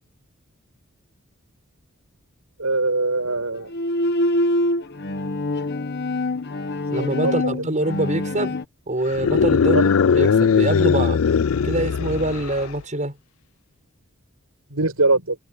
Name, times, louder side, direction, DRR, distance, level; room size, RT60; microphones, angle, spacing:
voice 1, 2.6-3.7 7.0-7.3 9.7-9.8 14.7-15.4, right 2 dB, 85° right, 6.1 m, -22 dB
Bowed string instrument, 3.6-8.6, left 1 dB, 50° left, 1.4 m, -25 dB
voice 2, 6.9-8.6 8.9-9.9 10.2-11.2 11.6-13.2, right 1 dB, 35° right, 7.4 m, -24 dB
sound 1, 9.1-12.8, left 6 dB, 70° left, 0.4 m, -19 dB
head